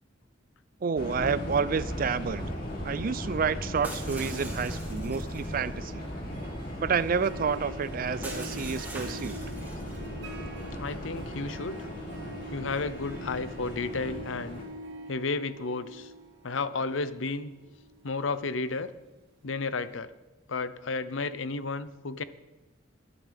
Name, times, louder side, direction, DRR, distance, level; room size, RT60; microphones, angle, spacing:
voice 1, 0.8-2.5 2.8-6.0 6.8-9.4, right 6 dB, 45° right, 16 dB, 0.4 m, -29 dB
sound 1, 1.0-14.6, equal, 50° left, 3.1 m, -37 dB
Shatter, 3.8-5.5 8.2-10.1, right 2 dB, 10° right, 2.8 m, -42 dB
Harp, 5.4-19.2, right 1 dB, 65° right, 2.3 m, -46 dB
voice 2, 10.8-11.9 12.5-14.6 15.1-16.1 16.4-17.5 18.0-18.9 19.4-20.1 20.5-22.2, left 3 dB, 85° left, 13 dB, 0.7 m, -32 dB
20.5 x 11.0 x 3.5 m, 1.1 s
head